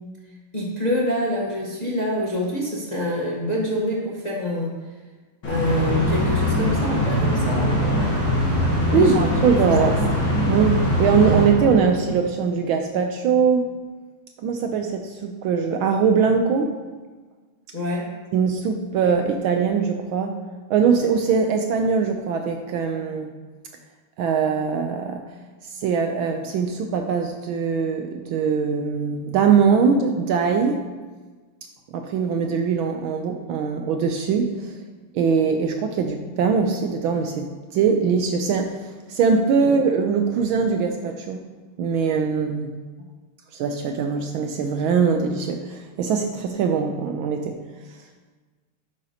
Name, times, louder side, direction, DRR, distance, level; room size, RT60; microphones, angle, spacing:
voice 1, 0.5-4.7 5.4-8.2 8.9-9.4 9.7-9.9 17.7-18.1 39.6-39.7, left 1 dB, 25° left, -4 dB, 0.9 m, -26 dB
sound 1, 5.4-12.2, left 1 dB, 65° left, 2.3 m, -22 dB
voice 2, 8.7-9.9 10.4-13.7 14.4-16.7 18.3-20.3 20.7-23.3 24.2-25.2 25.8-30.8 31.9-34.7 35.1-38.8 39.1-41.4 41.8-42.7 43.5-47.6, right 6 dB, 75° right, 4 dB, 1.4 m, -21 dB
10.5 x 8.1 x 2.9 m, 1.3 s
omnidirectional pair, 2.4 m